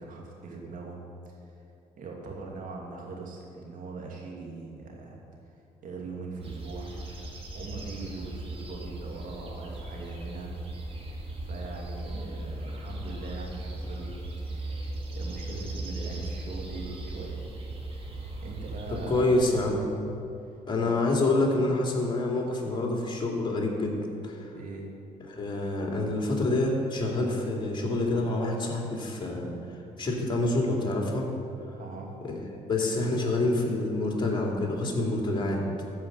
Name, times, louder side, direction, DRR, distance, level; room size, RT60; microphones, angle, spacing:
voice 1, 0.0-1.4 2.0-5.2 5.8-7.0 7.5-10.5 11.4-17.4 17.9-19.4 20.8-21.1 24.5-24.9 31.7-32.1, right 3 dB, 65° right, -1 dB, 2.5 m, -41 dB
sound 1, 6.4-19.6, right 2 dB, 40° right, 2.3 m, -38 dB
voice 2, 19.1-19.9 20.7-23.9 24.2-24.5 25.3-29.5 30.0-31.3 32.2-35.6, left 2 dB, 35° left, 0 dB, 2.6 m, -27 dB
14.0 x 5.0 x 7.9 m, 2.7 s
cardioid pair, 80°, 14 cm